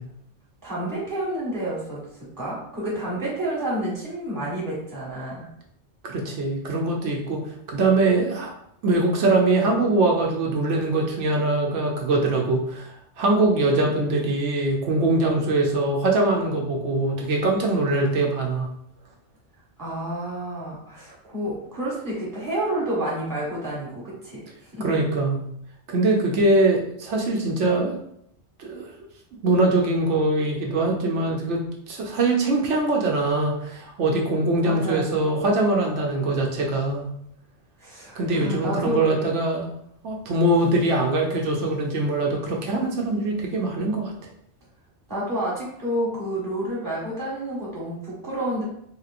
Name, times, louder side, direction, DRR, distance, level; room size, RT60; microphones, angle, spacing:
voice 1, 0.6-5.5 19.8-24.4 24.7-24.9 34.6-35.0 37.8-39.0 45.1-48.6, right 1 dB, 15° right, -6 dB, 1.3 m, -29 dB
voice 2, 6.0-7.4 7.7-8.5 8.8-18.7 24.8-25.4 25.9-28.0 28.6-28.9 29.4-37.1 38.2-39.7 40.0-44.1, right 2 dB, 85° right, 0 dB, 1.0 m, -22 dB
3.3 x 2.9 x 2.4 m, 0.72 s
omnidirectional pair, 1.2 m